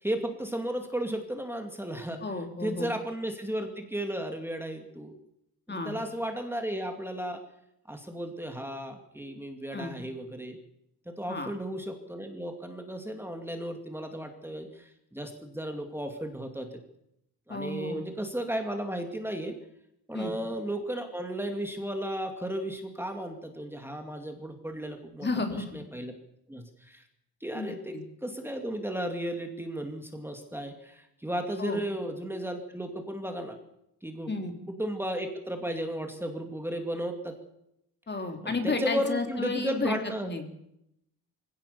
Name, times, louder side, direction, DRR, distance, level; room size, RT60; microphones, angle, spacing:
voice 1, 0.0-2.2 2.6-5.1 5.7-7.4 7.9-10.6 11.1-16.7 17.5-19.6 20.1-26.1 26.5-27.0 27.4-28.0 28.2-33.6 34.0-34.3 34.7-37.4 38.4-40.3, right 1 dB, 5° right, 4 dB, 2.5 m, -34 dB
voice 2, 2.2-2.9 5.7-6.0 9.7-9.9 11.3-11.5 17.5-18.0 20.1-20.3 25.2-25.6 27.5-28.0 31.6-31.8 34.3-34.5 38.1-39.9 40.2-40.4, left 3 dB, 30° left, 5 dB, 3.2 m, -32 dB
25.0 x 17.0 x 7.0 m, 0.79 s
cardioid pair, 125°, 38 cm